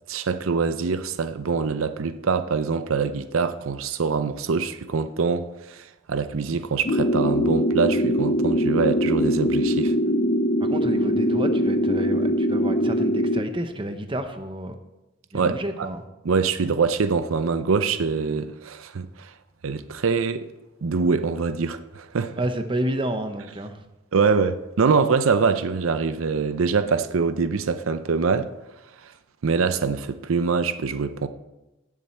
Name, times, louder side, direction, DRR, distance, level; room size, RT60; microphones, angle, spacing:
voice 1, 0.1-9.9 15.3-15.9 16.2-19.3 19.6-20.5 20.8-22.4 24.1-28.5 29.0-29.1 29.4-31.3, right 5 dB, 85° right, 0.6 m, -24 dB
sound 1, 6.8-13.4, equal, 40° left, 0.5 m, -22 dB
voice 2, 10.6-14.8 15.3-16.0 22.4-23.8, right 1 dB, 25° right, 0.8 m, -30 dB
17.0 x 7.3 x 4.4 m
head